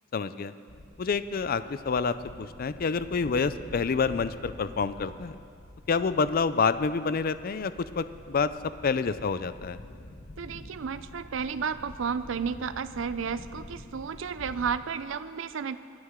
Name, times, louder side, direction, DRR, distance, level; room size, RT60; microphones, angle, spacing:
voice 1, 0.1-0.5 1.0-5.4 5.9-8.5 8.8-9.8, left 5 dB, 50° left, 14 dB, 0.4 m, -28 dB
sound 1, 0.7-14.8, left 1 dB, 70° left, 1.3 m, -47 dB
voice 2, 10.4-15.8, right 6 dB, 70° right, 13 dB, 0.5 m, -32 dB
24.5 x 9.6 x 3.7 m, 2.3 s
head